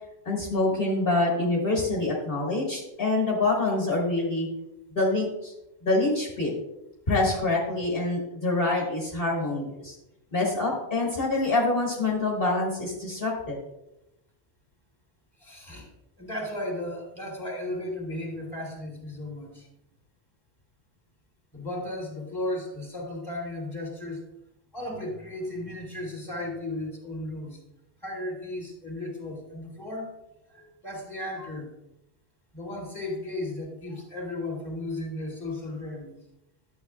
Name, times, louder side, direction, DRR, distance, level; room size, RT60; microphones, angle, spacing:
voice 1, 0.3-4.5 4.9-5.5 5.8-6.6 7.1-9.9 10.3-13.6, left 2 dB, 60° left, -4 dB, 1.9 m, -26 dB
voice 2, 15.4-15.9 16.2-19.7 21.5-24.2 24.7-27.6 28.0-30.1 30.5-31.7 32.5-36.1, left 1 dB, 20° left, -1 dB, 3.1 m, -35 dB
12.0 x 8.0 x 2.4 m, 0.89 s
omnidirectional pair, 1.0 m